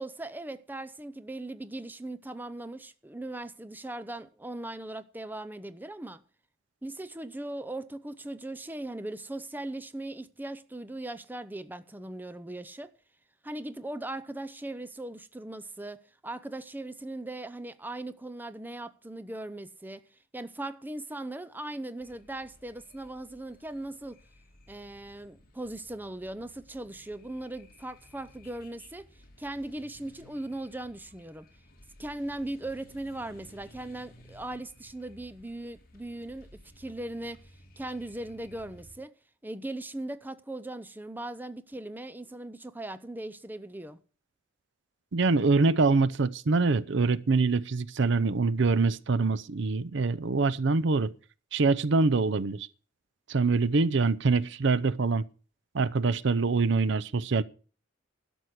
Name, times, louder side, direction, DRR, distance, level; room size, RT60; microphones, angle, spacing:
voice 1, 0.0-6.2 6.8-12.9 13.4-20.0 20.3-24.2 24.7-31.5 32.0-36.5 36.8-37.4 37.8-39.1 39.4-44.0, right 1 dB, 10° right, 0.6 m, -39 dB
sound 1, 22.0-39.0, left 1 dB, 45° left, 2.7 m, -56 dB
voice 2, 45.1-51.1 51.5-52.7 53.3-55.2 55.7-57.4, right 3 dB, 60° right, 0.6 m, -25 dB
12.0 x 6.2 x 8.3 m
head